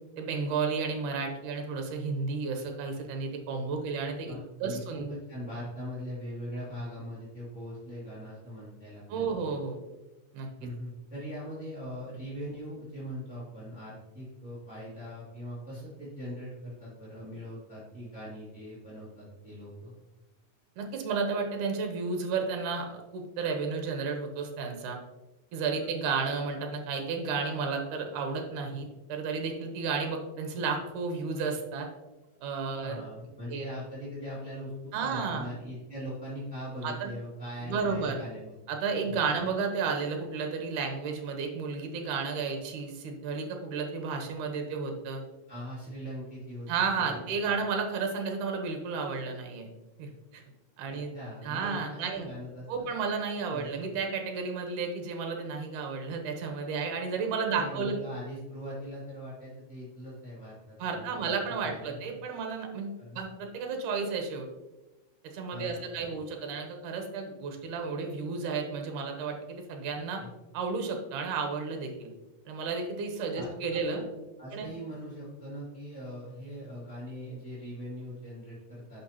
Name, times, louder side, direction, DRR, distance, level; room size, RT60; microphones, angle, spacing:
voice 1, 0.2-5.1 9.1-9.8 10.3-10.7 20.8-25.0 25.5-31.9 32.4-33.0 33.5-33.6 34.9-35.5 36.8-37.1 37.7-38.2 38.7-45.2 46.7-49.7 50.0-50.4 50.8-51.1 51.4-52.3 52.7-58.0 60.8-64.5 65.2-70.2 70.5-72.1 72.5-74.0 74.5-74.7, right 5 dB, 75° right, 4 dB, 2.4 m, -32 dB
voice 2, 3.8-9.3 10.6-19.9 32.7-34.7 35.0-38.6 39.0-39.4 45.5-46.7 46.9-47.3 50.9-52.9 53.5-53.8 57.5-61.3 61.6-62.0 63.0-63.2 65.5-66.0 70.2-70.3 73.3-73.5 73.9-74.1 74.4-79.0, equal, 5° right, -8 dB, 1.3 m, -41 dB
10.5 x 4.8 x 2.9 m, 1.1 s
omnidirectional pair, 3.9 m